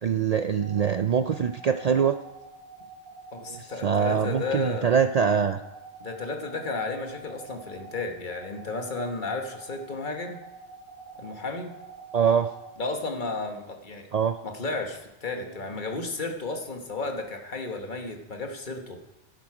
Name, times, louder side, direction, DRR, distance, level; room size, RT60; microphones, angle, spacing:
voice 1, 0.0-2.2 3.5-5.6 12.1-12.5 14.1-14.4, right 7 dB, 75° right, 9 dB, 0.3 m, -23 dB
sound 1, 0.6-12.8, right 5 dB, 45° right, 5.5 m, -46 dB
voice 2, 3.3-4.9 6.0-10.4 11.2-11.7 12.8-14.1 14.4-19.0, left 3 dB, 45° left, 4 dB, 1.5 m, -33 dB
12.0 x 11.5 x 4.9 m, 0.97 s
omnidirectional pair, 1.2 m